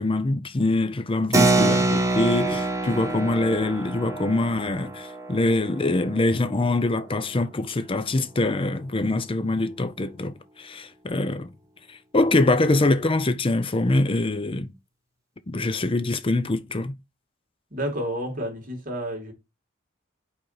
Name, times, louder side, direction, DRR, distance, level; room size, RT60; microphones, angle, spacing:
voice 1, 0.0-11.5 11.9-14.7 15.5-16.9, left 2 dB, 25° left, 0.5 m, -24 dB
Keyboard (musical), 1.3-7.4, right 2 dB, 15° right, 0.8 m, -26 dB
voice 2, 17.7-19.3, equal, 45° right, 2.5 m, -30 dB
5.3 x 4.2 x 5.7 m
head